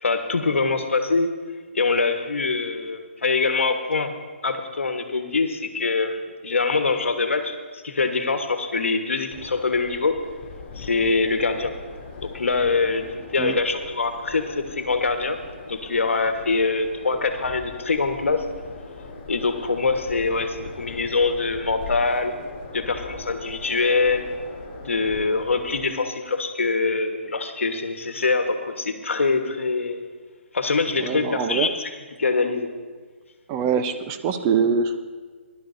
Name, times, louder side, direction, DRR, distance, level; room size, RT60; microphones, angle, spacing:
voice 1, 0.0-1.3 1.7-4.1 4.4-10.2 10.8-11.7 12.2-15.4 15.7-18.4 19.3-22.3 22.7-24.3 24.8-30.0 30.5-31.9 32.2-32.7, left 4 dB, 80° left, 7 dB, 1.2 m, -24 dB
sound 1, 9.3-25.9, left 3 dB, 30° left, 2.9 m, -40 dB
voice 2, 31.0-31.7 33.5-35.0, right 6 dB, 25° right, 8 dB, 0.7 m, -23 dB
19.5 x 11.5 x 2.6 m, 1.5 s
figure-of-eight pair, 140°, 7 cm